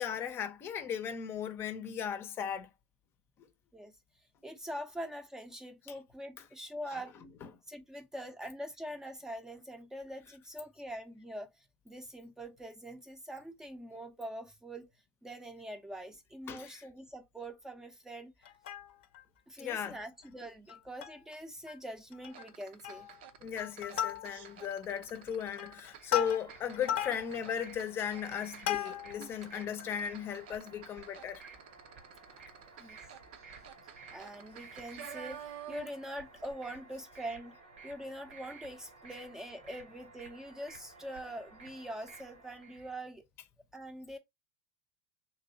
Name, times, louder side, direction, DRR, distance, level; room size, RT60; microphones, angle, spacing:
voice 1, 0.0-2.7 6.9-7.0 16.5-16.8 19.6-20.0 23.4-31.4, left 8 dB, 40° left, 0.7 m, -36 dB
voice 2, 4.4-7.1 7.7-11.5 11.9-14.9 15.2-18.3 19.5-23.1 29.2-29.3 32.8-33.0 34.1-35.4 35.7-37.5 37.8-43.2 43.7-44.2, equal, 10° right, 0.6 m, -44 dB
Plucked string instrument, 18.4-19.2 19.7-19.8 20.0-20.2 20.7-21.3 21.7-21.8 22.1-22.5 22.8-23.2 23.6-24.6 25.2-29.3 29.8-29.9, left 10 dB, 75° left, 0.7 m, -37 dB
sound 1, 22.3-36.1 36.4-36.5, right 9 dB, 70° right, 0.6 m, -51 dB
sound 2, 25.8-42.9, right 4 dB, 90° right, 1.1 m, -54 dB
3.0 x 2.9 x 2.7 m
hypercardioid pair, 95°, 6 cm